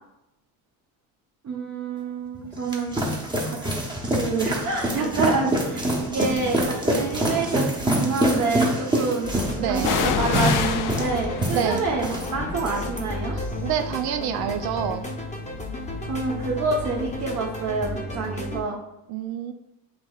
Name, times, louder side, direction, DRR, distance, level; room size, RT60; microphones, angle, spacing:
voice 1, 1.4-2.9 3.5-3.6 4.1-9.3 9.7-13.4 16.1-18.8, right 4 dB, 40° right, -2 dB, 0.9 m, -27 dB
sound 1, 2.3-12.3 12.6-13.0, right 1 dB, 10° right, 0.9 m, -25 dB
sound 2, 4.8-5.2 5.9-6.9 9.8-17.4 17.7-17.8, left 7 dB, 50° left, 0.5 m, -31 dB
sound 3, 9.2-18.6, left 1 dB, 15° left, 0.8 m, -33 dB
voice 2, 9.6-9.9 11.5-11.8 13.3-15.1 19.1-19.5, right 9 dB, 60° right, 7 dB, 0.5 m, -27 dB
7.5 x 2.9 x 2.3 m, 0.89 s
cardioid pair, 105°, 42 cm